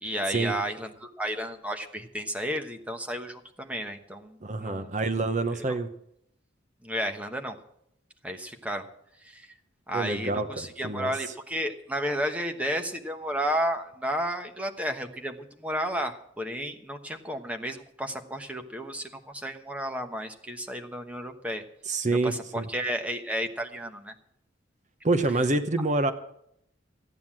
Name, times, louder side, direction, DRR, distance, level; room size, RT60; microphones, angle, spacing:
voice 1, 0.0-4.9 5.5-5.8 6.8-7.6 8.2-8.9 9.2-9.5 9.9-21.6 22.2-24.1, equal, 5° right, 5 dB, 1.2 m, -32 dB
voice 2, 4.4-5.9 9.9-11.1 21.8-22.7 25.0-26.1, right 2 dB, 40° right, 10 dB, 0.9 m, -27 dB
14.0 x 9.5 x 7.4 m, 0.74 s
head